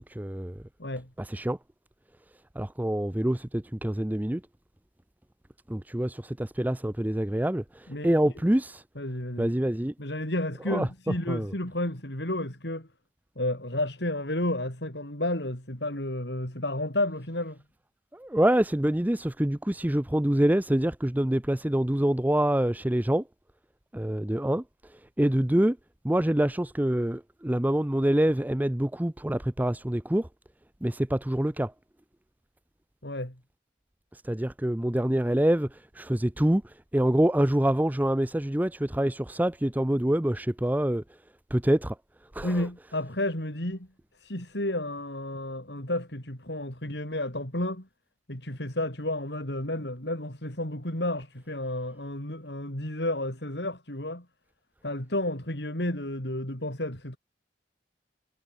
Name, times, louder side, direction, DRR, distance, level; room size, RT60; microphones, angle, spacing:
voice 1, 0.2-0.5 1.3-1.6 2.6-4.4 5.7-7.6 8.0-8.8 9.4-9.9 10.7-10.9 11.3-11.5 18.2-23.2 23.9-24.6 25.2-25.8 26.0-30.3 30.8-31.7 34.3-35.7 36.0-36.6 36.9-41.0 41.5-41.9 42.4-42.5, right 1 dB, 10° right, 0.6 m, -25 dB
voice 2, 7.9-8.3 9.0-9.5 10.0-12.9 13.4-17.6 33.0-33.3 42.4-43.9 44.2-47.9 48.3-54.2 54.8-57.2, left 1 dB, 70° left, 5.6 m, -31 dB
head